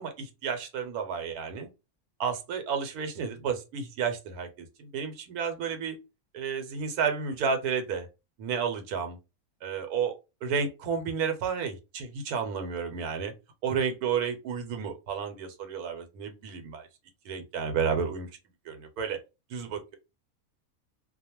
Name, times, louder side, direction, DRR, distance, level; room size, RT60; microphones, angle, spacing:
voice 1, 0.0-1.7 2.2-6.0 6.3-8.1 8.4-9.2 9.6-10.2 10.4-13.3 13.6-16.9 17.2-18.3 18.7-19.2 19.5-20.0, right 6 dB, 85° right, 1.1 m, -31 dB
2.4 x 2.2 x 2.8 m
omnidirectional pair, 1.6 m